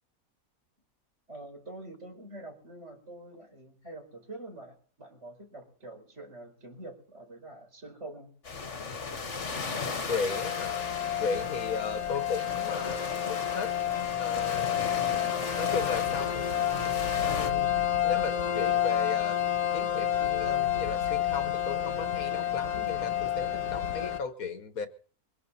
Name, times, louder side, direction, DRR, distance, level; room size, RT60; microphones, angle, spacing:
voice 1, 1.3-8.3, right 2 dB, 45° right, 3 dB, 5.2 m, -46 dB
sound 1, 8.4-17.5, left 4 dB, 50° left, 1.8 m, -37 dB
voice 2, 10.1-10.9 11.2-13.8 14.2-14.9 15.5-16.6 17.3-17.7 18.0-19.4 19.7-24.9, left 4 dB, 65° left, 9 dB, 1.7 m, -35 dB
sound 2, 10.3-24.2, left 11 dB, 90° left, 1.8 m, -29 dB
23.5 x 11.0 x 4.2 m, 0.43 s
omnidirectional pair, 1.6 m